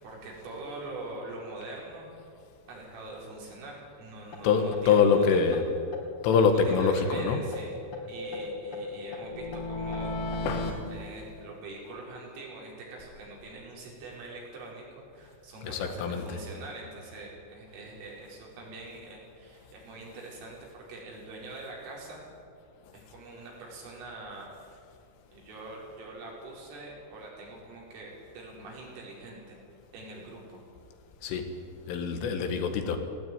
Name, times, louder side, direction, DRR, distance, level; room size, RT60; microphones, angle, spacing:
voice 1, 0.0-2.1 2.7-5.6 6.5-7.8 8.1-10.2 10.9-22.2 22.9-24.5 25.3-29.6 29.9-30.6, right 2 dB, 80° right, -3 dB, 7.5 m, -44 dB
sound 1, 4.3-4.4 4.7-4.8 5.1-5.2 5.5-5.6 5.9-7.2 7.5-10.7, left 2 dB, 40° left, 2.5 m, -36 dB
voice 2, 4.4-5.6 6.2-7.4 10.5-10.9 15.6-16.4 31.2-31.5 31.9-33.0, left 5 dB, 80° left, 6 dB, 4.2 m, -25 dB
18.0 x 17.5 x 9.4 m, 2.4 s
omnidirectional pair, 5.7 m